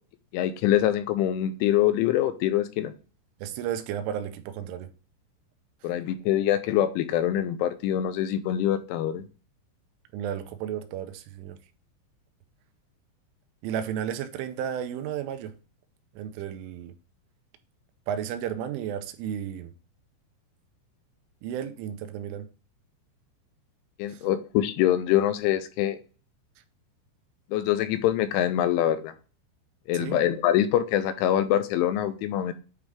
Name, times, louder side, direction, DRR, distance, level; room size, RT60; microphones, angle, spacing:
voice 1, 0.3-2.9 5.8-9.2 24.0-26.0 27.5-29.1 29.9-32.5, left 12 dB, 85° left, 3.0 m, -24 dB
voice 2, 3.4-4.9 5.8-5.9 10.1-11.6 13.6-15.5 16.2-16.9 18.1-19.7 21.4-22.5 24.1-24.2 29.9-30.2, right 9 dB, 85° right, 3.2 m, -33 dB
9.3 x 3.5 x 3.4 m
omnidirectional pair, 5.6 m